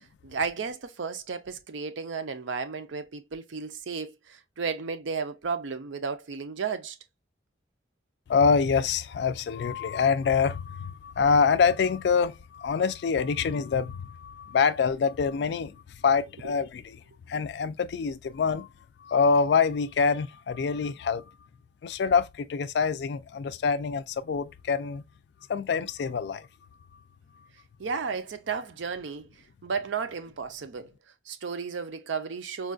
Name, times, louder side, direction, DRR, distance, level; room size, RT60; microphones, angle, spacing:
voice 1, 0.2-7.0 16.4-16.5 27.8-29.3 29.6-30.9 31.3-32.7, right 5 dB, 80° right, 0.5 m, -33 dB
voice 2, 8.3-15.8 16.0-17.0 17.3-18.7 19.0-21.3 21.8-25.0 25.5-26.5, left 5 dB, 65° left, 0.3 m, -25 dB
4.4 x 2.3 x 2.4 m
head